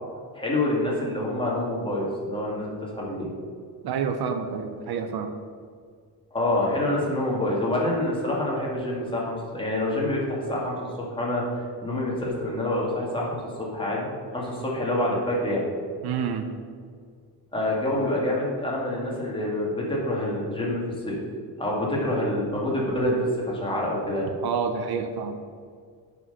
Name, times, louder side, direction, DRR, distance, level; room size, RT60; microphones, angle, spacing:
voice 1, 0.3-3.3 6.3-10.9 11.2-14.1 14.3-15.6 17.5-21.2 21.6-23.2 23.5-24.3, left 1 dB, 10° left, -4 dB, 2.4 m, -27 dB
voice 2, 3.8-5.3 16.0-16.5 24.4-25.4, right 6 dB, 65° right, 7 dB, 0.8 m, -28 dB
9.7 x 5.5 x 5.7 m, 2.1 s
cardioid pair, 150°, 41 cm